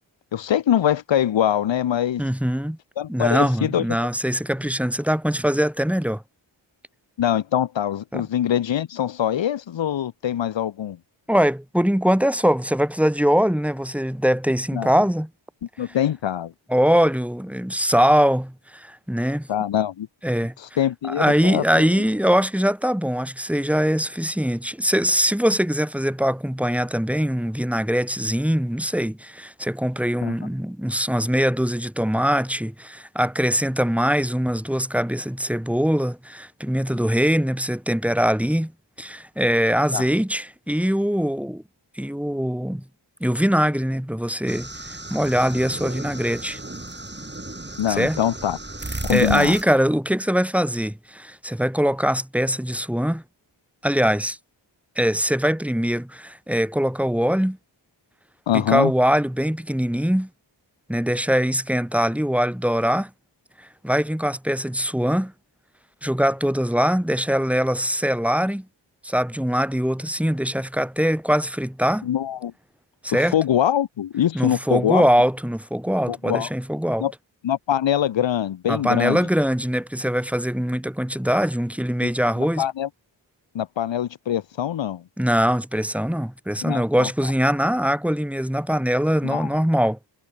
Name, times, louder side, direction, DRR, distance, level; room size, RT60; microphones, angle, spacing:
voice 1, 0.3-2.2 3.0-3.8 7.2-11.0 14.7-14.9 15.8-16.5 19.5-20.1 20.6-21.6 30.2-30.3 39.9-40.1 47.8-48.6 49.0-49.6 58.5-58.9 72.0-72.5 73.1-75.1 76.1-76.5 77.0-77.1 77.4-79.3 82.0-82.1 82.6-82.9 83.5-85.0 86.6-87.1 89.2-89.5, left 10 dB, 70° left, 1.0 m, -23 dB
voice 2, 2.2-2.8 3.1-6.2 8.1-8.3 11.3-15.3 16.7-19.5 20.2-20.5 21.0-38.7 39.0-41.6 42.0-42.8 43.2-46.6 47.9-48.2 49.1-53.2 53.8-54.4 55.0-57.6 58.5-60.3 60.9-63.1 63.8-65.3 66.0-68.7 69.0-72.1 73.0-73.4 74.3-77.1 78.7-82.6 85.2-90.0, equal, 5° right, 2.6 m, -22 dB
sound 1, 44.5-49.6, right 2 dB, 20° right, 6.5 m, -34 dB
cardioid pair, 65°, 47 cm